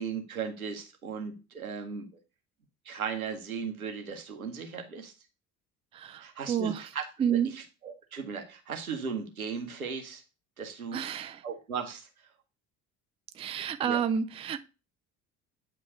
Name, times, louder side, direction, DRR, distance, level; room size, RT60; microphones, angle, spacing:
voice 1, 0.0-2.1 2.8-5.1 6.2-10.2 10.6-11.0 11.4-12.1 13.6-14.1, right 6 dB, 85° right, 0.9 m, -37 dB
voice 2, 5.9-6.8 7.2-7.5 10.9-11.4 13.4-14.6, right 8 dB, 15° right, 0.4 m, -30 dB
8.8 x 3.1 x 4.9 m
figure-of-eight pair, 50°, 42 cm